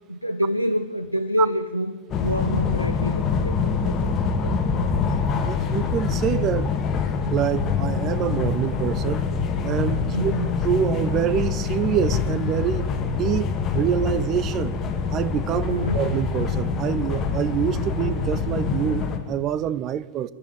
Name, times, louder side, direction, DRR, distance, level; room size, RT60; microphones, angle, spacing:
voice 1, 0.1-4.0 4.4-4.5 10.1-10.6 15.7-16.1, equal, 90° right, 0.9 m, -27 dB
sound 1, 2.1-19.2, left 5 dB, 30° left, 2.3 m, -25 dB
voice 2, 5.4-7.0 7.3-9.2 9.6-10.3 10.6-14.8 15.1-20.3, right 10 dB, 35° right, 0.8 m, -26 dB
27.5 x 11.5 x 9.5 m
figure-of-eight pair, 90°, 0 cm